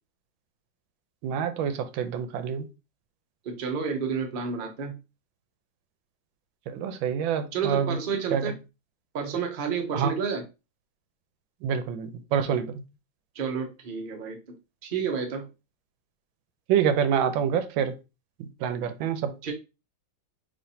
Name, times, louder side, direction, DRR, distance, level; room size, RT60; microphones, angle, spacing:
voice 1, 1.2-2.6 6.7-8.0 8.3-8.5 9.9-10.1 11.6-12.7 16.7-17.9 18.4-19.3, right 8 dB, 80° right, 1.3 m, -26 dB
voice 2, 3.4-5.0 7.5-8.6 9.1-10.4 13.3-14.4 14.8-15.5 19.4-19.5, right 6 dB, 55° right, 0.5 m, -30 dB
5.1 x 3.4 x 2.7 m
omnidirectional pair, 2.2 m